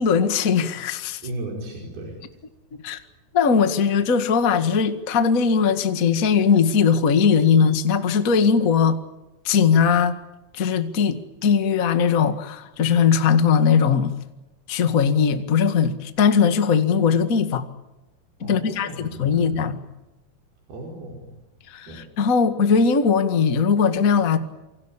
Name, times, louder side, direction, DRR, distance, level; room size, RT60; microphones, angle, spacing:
voice 1, 0.0-1.2 2.8-3.0 3.3-9.0 9.4-10.1 10.5-11.2 11.4-14.1 14.7-17.6 18.4-19.8 21.7-24.4, left 6 dB, 35° left, 1.4 m, -19 dB
voice 2, 1.2-2.2 18.4-19.7 20.7-21.4 21.9-22.0, right 1 dB, 90° right, 7.0 m, -35 dB
28.5 x 24.5 x 7.4 m
omnidirectional pair, 4.3 m